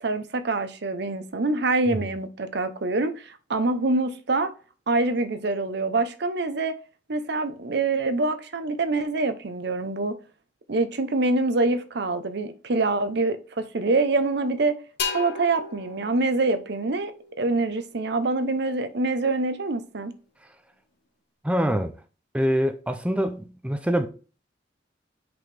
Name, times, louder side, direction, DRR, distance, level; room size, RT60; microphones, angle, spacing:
voice 1, 0.0-4.5 4.9-6.8 7.1-10.2 10.7-14.8 15.1-17.1 17.4-20.1, right 3 dB, 65° right, 0.7 m, -25 dB
sound 1, 15.0-18.6, left 5 dB, 60° left, 1.4 m, -36 dB
voice 2, 21.4-21.9 22.3-24.1, equal, 5° right, 0.5 m, -24 dB
6.0 x 5.2 x 3.3 m
head